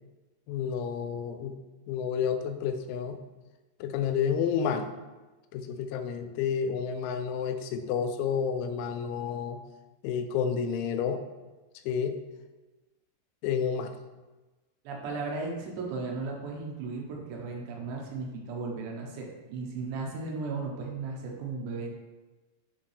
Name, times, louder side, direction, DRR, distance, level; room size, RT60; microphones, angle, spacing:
voice 1, 0.5-1.6 1.9-3.2 3.8-4.9 5.5-9.6 10.0-11.2 11.9-12.2 13.4-14.0, left 7 dB, 85° left, 8 dB, 2.9 m, -30 dB
voice 2, 14.8-21.9, right 3 dB, 80° right, -1 dB, 3.1 m, -35 dB
10.5 x 3.5 x 3.3 m, 1.2 s
omnidirectional pair, 5.2 m